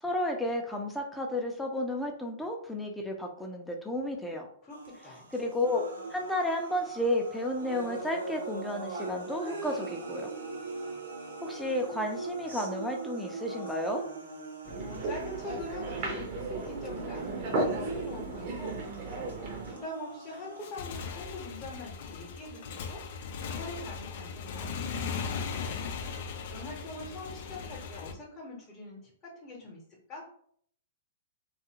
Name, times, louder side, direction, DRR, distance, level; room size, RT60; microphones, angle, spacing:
voice 1, 0.0-4.5 5.3-5.8 6.1-10.3 11.4-14.0, left 1 dB, 5° left, 1 dB, 0.5 m, -32 dB
voice 2, 4.6-5.3 14.7-18.8 19.1-23.0 23.4-25.9 26.2-29.8 30.1-30.2, left 2 dB, 20° left, -3 dB, 0.9 m, -43 dB
sound 1, 4.7-20.7, right 3 dB, 85° right, 0.7 m, -41 dB
sound 2, 14.7-19.7, right 2 dB, 45° right, 0.7 m, -35 dB
Motorcycle / Engine, 20.5-28.1, left 5 dB, 55° left, 0.4 m, -38 dB
2.6 x 2.4 x 2.8 m, 0.63 s
hypercardioid pair, 115°, 0 cm